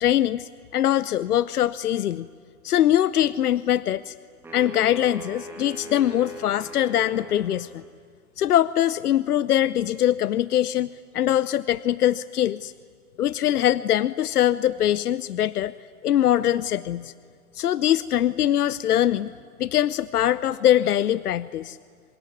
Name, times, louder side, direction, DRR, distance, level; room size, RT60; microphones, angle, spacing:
voice 1, 0.0-2.3 2.6-4.1 4.5-7.8 8.4-12.7 13.2-15.7 16.0-17.1 17.5-19.3 19.6-21.8, left 11 dB, 85° left, 18 dB, 0.7 m, -22 dB
sound 1, 4.4-7.8, right 1 dB, 5° right, 2.0 m, -40 dB
24.5 x 21.0 x 9.7 m, 2.1 s
hypercardioid pair, 165°, 44 cm